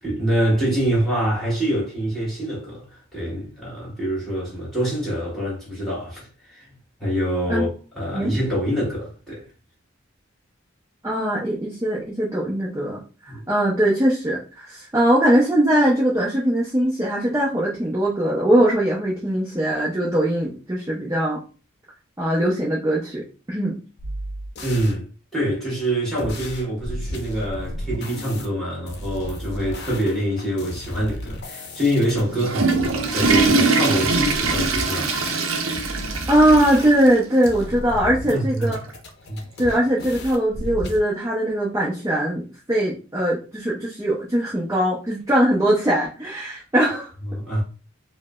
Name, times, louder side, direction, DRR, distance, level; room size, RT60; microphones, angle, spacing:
voice 1, 0.0-6.7 7.0-9.4 13.3-13.5 24.6-25.1 25.3-35.5 38.3-38.8 39.3-39.4 47.3-47.6, equal, ahead, 1.6 m, -25 dB
voice 2, 11.0-13.0 13.5-21.4 22.2-23.2 23.5-23.8 36.3-38.8 39.6-47.1, right 1 dB, 15° right, 0.6 m, -21 dB
sound 1, 24.0-25.0 26.2-28.5 28.9-32.2 32.7-33.5 34.0-37.1 37.4-38.3 38.6-41.0, left 1 dB, 55° left, 0.7 m, -34 dB
Water / Toilet flush, 32.1-37.1 37.5-37.6 38.3-38.4 39.7-39.8, right 3 dB, 80° right, 0.6 m, -22 dB
4.6 x 2.1 x 2.3 m
head